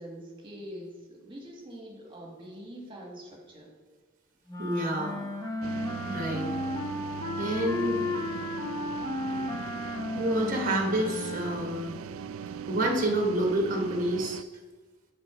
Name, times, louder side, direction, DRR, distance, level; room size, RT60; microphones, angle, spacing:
voice 1, 0.0-3.7, equal, 25° right, -1 dB, 1.5 m, -44 dB
sound 1, 4.5-11.8, left 2 dB, 20° left, 0.8 m, -34 dB
voice 2, 4.6-5.2 6.0-6.5 7.4-8.1 10.1-11.9 12.7-14.4, right 1 dB, 40° right, 1 dB, 1.0 m, -28 dB
sound 2, 5.6-14.4, right 7 dB, 70° right, 0.3 m, -39 dB
7.4 x 4.1 x 4.9 m, 1.4 s
head